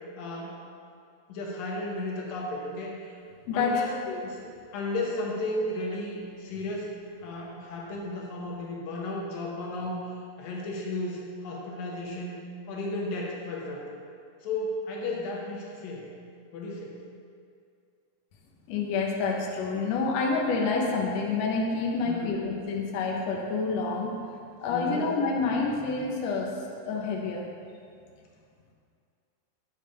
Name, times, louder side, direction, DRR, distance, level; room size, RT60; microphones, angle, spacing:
voice 1, 0.2-0.6 1.3-3.1 3.5-4.0 4.3-10.0 10.4-12.4 12.7-14.0 14.4-16.1 16.5-16.9 22.0-22.3 24.7-25.1, left 2 dB, 90° left, -2 dB, 3.0 m, -34 dB
voice 2, 3.5-3.8 4.1-4.2 18.7-24.1 24.6-26.5 26.9-27.4, left 4 dB, 65° left, -1 dB, 1.9 m, -28 dB
10.5 x 8.0 x 3.4 m, 2.3 s
omnidirectional pair, 3.9 m